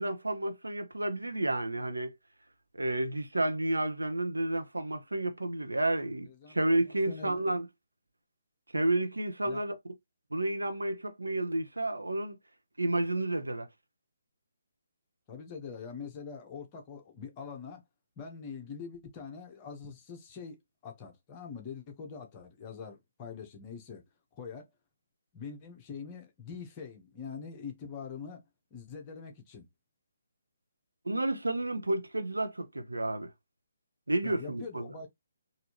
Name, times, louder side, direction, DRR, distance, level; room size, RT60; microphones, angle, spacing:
voice 1, 0.0-2.1 2.8-7.7 8.7-9.8 10.3-12.4 12.8-13.7 31.1-33.3 34.1-34.9, right 1 dB, 80° right, 0.8 m, -31 dB
voice 2, 6.3-7.4 9.4-9.6 15.3-17.8 18.2-20.6 20.8-24.0 24.4-24.7 25.3-28.4 28.7-29.7 34.2-35.1, left 6 dB, 25° left, 1.1 m, -44 dB
4.0 x 2.7 x 3.0 m
figure-of-eight pair, 140°, 0 cm